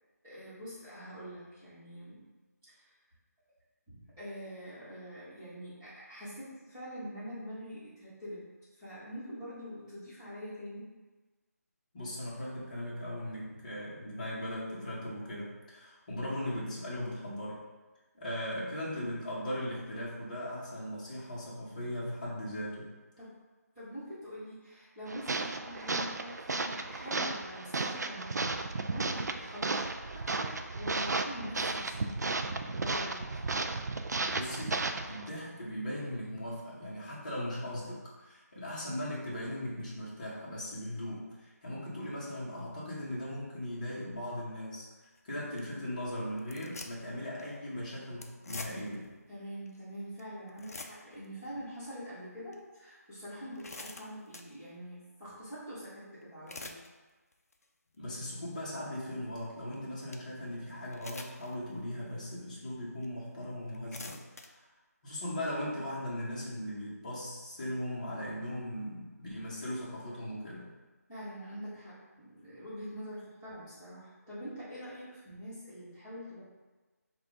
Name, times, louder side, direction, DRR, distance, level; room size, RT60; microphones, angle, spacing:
voice 1, 0.2-2.3 2.7-2.9 3.9-10.9 18.1-18.3 23.2-23.4 23.7-29.8 30.1-33.3 49.3-56.8 71.1-76.4, equal, 10° right, -14 dB, 1.4 m, -44 dB
voice 2, 11.9-17.6 18.2-22.9 34.3-44.9 45.2-49.1 58.0-64.2 65.0-70.7, left 1 dB, 30° left, -7 dB, 1.1 m, -38 dB
sound 1, 25.1-35.3, right 3 dB, 80° right, 0.4 m, -34 dB
sound 2, 45.0-45.2 45.6-45.7 46.4-47.1 47.4-47.5 48.2-49.0 49.7-49.8 50.2-50.3 50.5-51.2 51.7-51.9 52.5-52.6 53.2-54.5 56.2-56.9 57.3-57.6 58.2-58.3 59.7-59.8 60.1-60.2 60.9-61.5 62.1-62.2 63.0-63.1 63.7-64.5, left 3 dB, 65° left, 0.5 m, -45 dB
5.9 x 2.5 x 3.6 m, 1.3 s
figure-of-eight pair, 175°, 9 cm